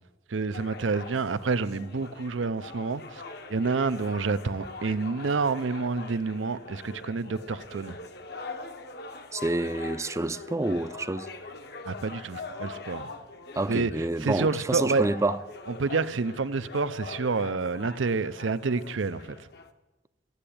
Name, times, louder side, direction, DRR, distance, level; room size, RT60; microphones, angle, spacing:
voice 1, 0.3-3.2 3.5-8.0 11.8-13.1 13.7-13.9 14.2-15.1 15.8-19.5, right 4 dB, 85° right, 0.6 m, -28 dB
sound 1, 0.5-19.7, left 3 dB, 55° left, 1.0 m, -43 dB
voice 2, 9.3-11.3 13.6-15.4, right 2 dB, 15° right, 0.4 m, -28 dB
15.0 x 8.9 x 8.6 m
head